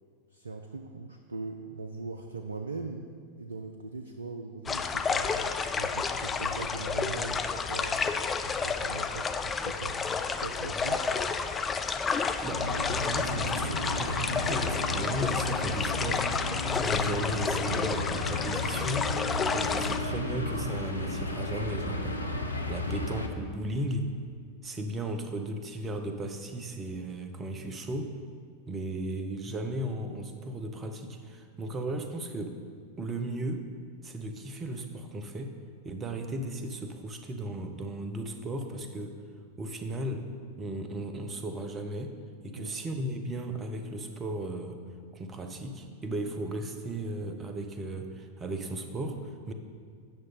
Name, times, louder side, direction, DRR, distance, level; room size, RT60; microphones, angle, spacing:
voice 1, 0.3-3.1 3.4-8.0 8.4-10.0 10.4-11.1 22.9-23.0 42.6-42.8, right 3 dB, 75° right, 5 dB, 0.4 m, -40 dB
sound 1, 4.7-20.0, left 5 dB, 20° left, 0.4 m, -31 dB
sound 2, 12.5-23.3, left 2 dB, 80° left, 0.6 m, -33 dB
voice 2, 13.1-16.2 16.7-19.1 19.5-22.2 22.7-24.1 24.6-28.1 28.7-32.6 33.0-33.6 34.0-35.5 35.8-39.2 39.6-40.2 40.6-42.1 42.4-44.8 45.1-49.5, right 1 dB, 20° right, 6 dB, 0.7 m, -35 dB
8.7 x 6.2 x 4.2 m, 2.1 s
figure-of-eight pair, 90°, 0 cm